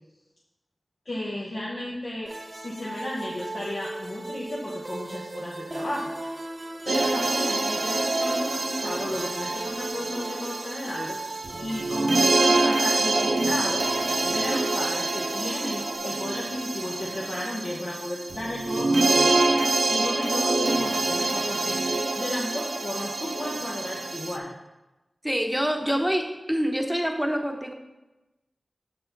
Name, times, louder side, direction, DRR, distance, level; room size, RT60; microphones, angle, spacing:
voice 1, 1.0-6.4 6.8-11.2 11.6-13.9 14.2-24.5, left 1 dB, 70° left, -5 dB, 1.3 m, -34 dB
sound 1, 2.3-16.0, right 2 dB, 45° right, 0.8 m, -37 dB
sound 2, 6.9-24.4, right 2 dB, 75° right, 0.6 m, -26 dB
voice 2, 25.2-27.7, equal, ahead, 3 dB, 1.0 m, -26 dB
7.4 x 6.9 x 4.0 m, 1.0 s
wide cardioid pair, 80°, 0 cm